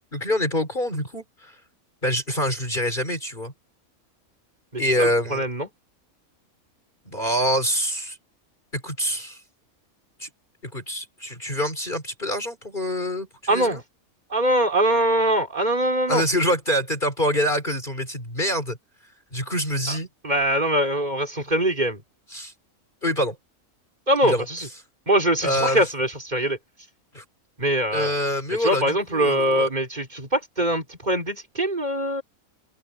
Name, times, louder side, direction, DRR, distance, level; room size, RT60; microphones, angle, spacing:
voice 1, 0.1-1.6 2.0-3.5 4.8-5.5 7.1-8.2 8.7-9.4 10.2-10.3 10.7-13.8 16.1-18.8 19.3-20.1 22.3-22.5 23.0-23.4 24.2-24.4 25.4-25.9 27.1-27.2 27.9-29.7, equal, 35° left, 4.3 m, -25 dB
voice 2, 4.7-5.7 13.5-13.8 14.3-16.2 19.9-20.0 20.2-22.0 24.1-24.7 25.1-26.6 27.6-28.2 28.6-32.2, right 1 dB, 30° right, 4.2 m, -23 dB
open air
omnidirectional pair, 1.5 m